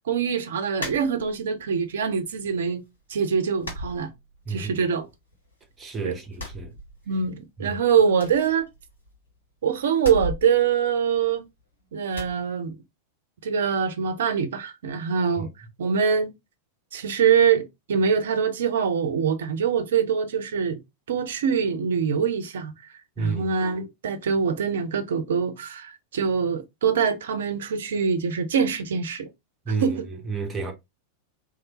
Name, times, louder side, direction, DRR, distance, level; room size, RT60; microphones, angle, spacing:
voice 1, 0.1-2.8 3.1-4.1 4.5-5.1 6.0-6.1 7.1-8.7 9.6-11.5 11.9-12.8 13.4-16.3 16.9-20.8 21.1-22.7 23.2-29.3 29.8-30.1, right 6 dB, 60° right, 0.5 m, -24 dB
sound 1, 0.8-1.7 2.0-2.7 3.0-3.2 3.6-4.7 5.0-5.8 6.3-7.4 7.7-7.8 8.1-9.3 9.9-11.6 12.1-12.4, equal, 75° left, 1.2 m, -37 dB
voice 2, 5.8-6.7 7.6-7.8 15.4-15.5 23.2-23.5 29.7-30.7, right 4 dB, 20° right, 0.9 m, -30 dB
3.2 x 2.3 x 2.8 m
figure-of-eight pair, 90°, 0 cm